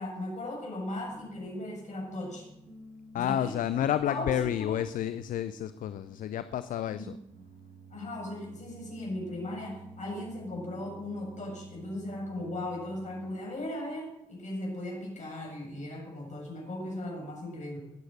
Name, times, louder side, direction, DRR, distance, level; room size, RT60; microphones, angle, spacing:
voice 1, 0.0-2.5 3.2-4.8 6.9-7.1 7.9-17.8, left 1 dB, 60° left, -1 dB, 7.9 m, -37 dB
Piano, 1.1-13.5, right 1 dB, 90° right, 5.7 m, -51 dB
voice 2, 3.1-7.2, left 10 dB, 75° left, 13 dB, 0.5 m, -30 dB
20.0 x 8.0 x 6.7 m, 0.87 s
supercardioid pair, 45°, 14 cm